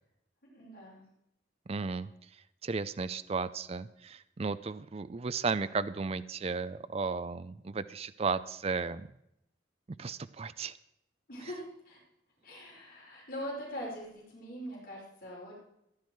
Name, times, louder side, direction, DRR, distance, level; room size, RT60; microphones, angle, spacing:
voice 1, 0.4-1.0 11.3-12.0 12.4-15.6, equal, 55° left, -4 dB, 5.2 m, -42 dB
voice 2, 1.7-2.1 2.6-9.1 10.0-10.7, right 4 dB, 35° right, 13 dB, 0.4 m, -34 dB
15.0 x 11.5 x 4.6 m, 0.79 s
head